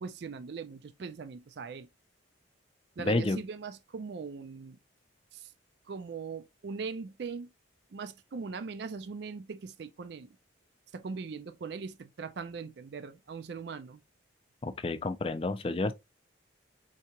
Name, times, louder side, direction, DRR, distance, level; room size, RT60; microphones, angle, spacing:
voice 1, 0.0-1.9 3.0-4.8 5.3-5.5 5.9-7.5 7.9-10.4 10.9-14.0, right 5 dB, 55° right, 0.4 m, -40 dB
voice 2, 3.0-3.4 14.6-15.9, left 2 dB, 30° left, 0.4 m, -30 dB
4.5 x 2.8 x 2.8 m
head